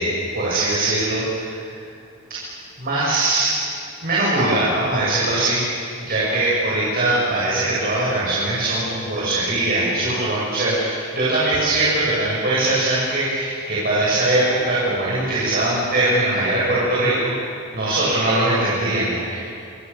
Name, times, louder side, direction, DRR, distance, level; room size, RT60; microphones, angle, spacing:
voice 1, 0.0-1.7 2.3-2.5 2.8-3.5 4.0-5.6 6.0-19.4, right 2 dB, 45° right, -7 dB, 7.4 m, -21 dB
28.0 x 27.0 x 7.2 m, 2.5 s
head